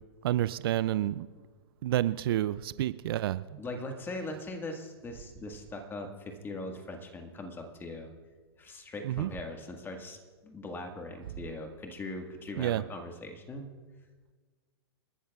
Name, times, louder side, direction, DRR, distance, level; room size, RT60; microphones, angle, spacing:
voice 1, 0.2-1.3 1.8-3.6 9.0-9.3 12.6-12.8, right 13 dB, 60° right, 16 dB, 0.4 m, -29 dB
voice 2, 3.6-8.1 8.6-13.7, left 2 dB, 15° left, 4 dB, 1.7 m, -40 dB
29.0 x 12.0 x 2.4 m, 1.4 s
hypercardioid pair, 120°, 14 cm